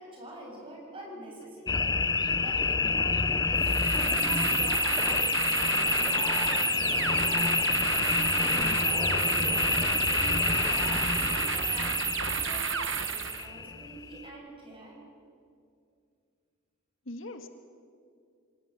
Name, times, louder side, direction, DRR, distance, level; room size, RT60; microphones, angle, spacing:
voice 1, 0.0-1.9 2.4-6.3 6.7-6.9 7.8-9.9 10.4-15.0, right 1 dB, 25° right, -2 dB, 7.3 m, -45 dB
sound 1, 1.7-14.3, left 4 dB, 20° left, 0.5 m, -28 dB
sound 2, 3.6-13.5, right 9 dB, 60° right, 1.2 m, -31 dB
voice 2, 17.1-17.5, left 2 dB, 65° left, 7 dB, 1.6 m, -40 dB
26.5 x 18.0 x 7.9 m, 2.3 s
head